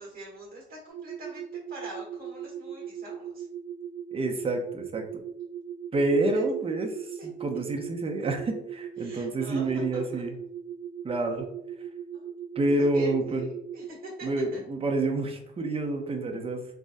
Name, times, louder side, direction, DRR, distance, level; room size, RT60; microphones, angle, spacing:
voice 1, 0.0-3.5 6.3-6.4 7.2-7.3 9.0-10.2 12.1-12.3 12.8-14.6, right 2 dB, 45° right, -5 dB, 1.2 m, -44 dB
sound 1, 0.9-13.9, right 8 dB, 70° right, 0.6 m, -39 dB
voice 2, 4.1-5.0 5.9-6.9 7.2-10.3 11.0-11.5 12.6-13.5 14.2-16.7, right 2 dB, 30° right, 3 dB, 0.6 m, -28 dB
3.5 x 2.1 x 2.6 m, 0.73 s
cardioid pair, 90°, 20 cm